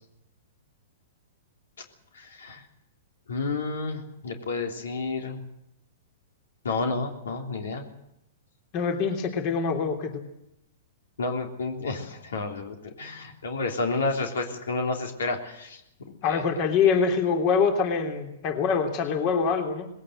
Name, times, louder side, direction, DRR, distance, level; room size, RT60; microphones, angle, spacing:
voice 1, 2.1-2.6 3.3-5.4 6.6-7.9 11.2-15.8 16.2-16.5, left 3 dB, 85° left, 3 dB, 3.4 m, -30 dB
voice 2, 8.7-10.2 16.2-19.9, left 5 dB, 40° left, 4 dB, 3.2 m, -24 dB
20.0 x 17.0 x 7.9 m, 0.81 s
hypercardioid pair, 130°, 0 cm